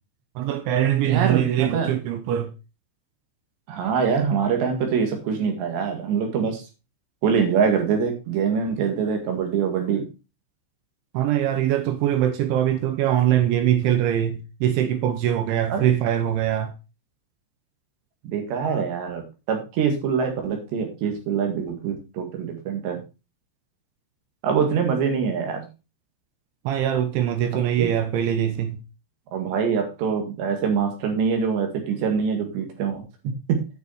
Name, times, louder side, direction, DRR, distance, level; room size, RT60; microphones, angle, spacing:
voice 1, 0.4-2.5 11.1-16.7 26.7-28.8, right 11 dB, 80° right, 2.9 m, -22 dB
voice 2, 1.0-1.9 3.7-6.6 7.2-10.0 15.7-15.8 18.2-19.2 19.5-23.0 24.4-25.7 27.8-27.9 29.3-33.6, right 6 dB, 65° right, 3.8 m, -24 dB
9.6 x 6.5 x 4.2 m
omnidirectional pair, 6.0 m